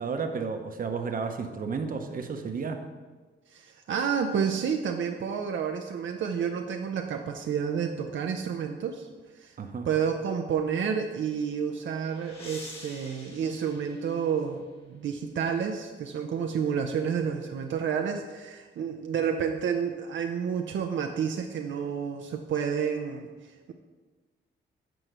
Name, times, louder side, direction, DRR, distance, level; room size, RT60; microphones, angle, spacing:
voice 1, 0.0-2.9 9.6-9.9, right 5 dB, 45° right, 5 dB, 0.9 m, -32 dB
voice 2, 3.5-9.1 9.3-9.5 9.8-23.7, right 7 dB, 70° right, 3 dB, 0.6 m, -30 dB
sound 1, 11.5-14.7, left 2 dB, 30° left, 1.7 m, -48 dB
7.8 x 4.4 x 6.6 m, 1.3 s
cardioid pair, 115°, 20 cm